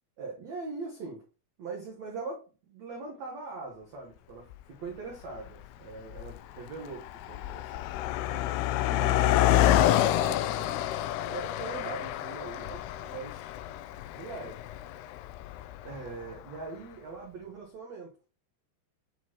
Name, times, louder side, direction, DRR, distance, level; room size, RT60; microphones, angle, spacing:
voice 1, 0.2-1.2 1.6-8.4 8.9-10.9 11.2-13.5 14.1-14.6 15.8-18.1, right 3 dB, 85° right, 1.5 m, -41 dB
Car passing by, 4.5-4.6 5.4-5.7 5.9-16.3, left 13 dB, 85° left, 2.3 m, -28 dB
9.9 x 4.3 x 2.9 m
omnidirectional pair, 5.1 m